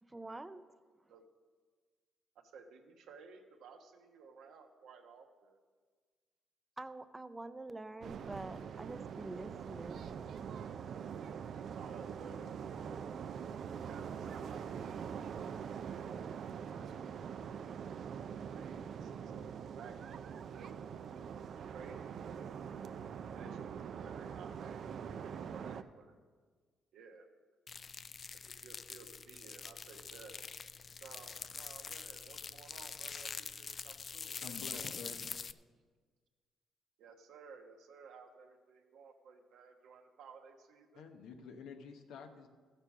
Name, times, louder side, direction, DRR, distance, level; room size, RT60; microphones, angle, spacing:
voice 1, 0.0-0.7 1.0-1.1 6.8-10.1, right 2 dB, 15° right, 12 dB, 0.6 m, -46 dB
voice 2, 2.5-5.6 11.7-13.0 13.9-17.4 18.1-21.4 21.7-22.5 23.3-24.9 25.2-26.1 26.9-27.3 28.3-30.4 31.0-35.0 37.0-41.0, right 5 dB, 80° right, 4 dB, 1.2 m, -56 dB
sound 1, 8.0-25.8, right 7 dB, 60° right, 0.5 m, -44 dB
sound 2, 27.7-35.5, left 5 dB, 45° left, 0.3 m, -45 dB
voice 3, 34.4-35.6 40.9-42.5, left 5 dB, 85° left, 5 dB, 1.1 m, -49 dB
14.0 x 6.7 x 6.1 m, 1.5 s
cardioid pair, 90°, 0 cm